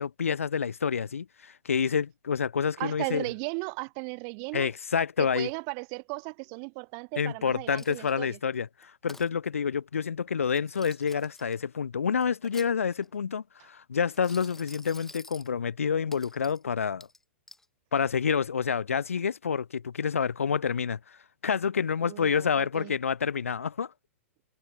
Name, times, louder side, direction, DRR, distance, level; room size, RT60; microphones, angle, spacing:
voice 1, 0.0-3.2 4.5-5.5 7.2-17.1 17.9-21.0 21.4-23.9, left 6 dB, 75° left, 0.3 m, -28 dB
voice 2, 2.8-4.7 5.2-8.4 22.1-22.9, right 40 dB or more, 40° right, 2.7 m, -36 dB
Coin (dropping), 7.8-8.3 8.8-9.3 10.4-11.5 12.2-13.1 14.1-15.5 16.1-16.6 17.0-17.6, left 2 dB, 5° left, 6.6 m, -50 dB
figure-of-eight pair, 100°, 7 cm